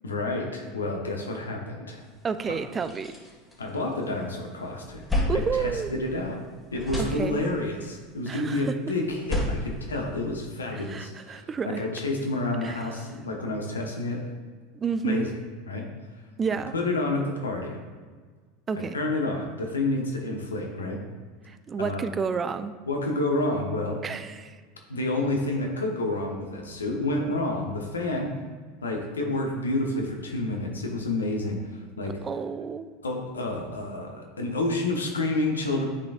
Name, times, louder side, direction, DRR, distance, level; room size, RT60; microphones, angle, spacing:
voice 1, 0.0-2.0 3.6-6.4 6.7-14.2 15.0-15.3 15.6-15.9 16.7-17.8 18.7-21.0 21.8-22.1 22.9-24.0 24.9-28.3 28.8-32.2 33.0-35.8, left 2 dB, 85° left, 1 dB, 0.9 m, -29 dB
sound 1, 2.1-2.2 2.5-4.2 4.6-6.4 6.7-7.8 9.0-10.7, left 1 dB, 10° left, 1.8 m, -32 dB
voice 2, 2.2-3.1 5.3-5.9 7.0-7.5 8.3-8.7 10.7-11.8 12.6-12.8 14.7-15.3 16.4-16.7 18.7-19.0 21.5-22.7 24.0-24.6 32.2-32.9, right 5 dB, 25° right, 11 dB, 0.3 m, -30 dB
9.9 x 4.0 x 2.5 m, 1.5 s
hypercardioid pair, 80°, 0 cm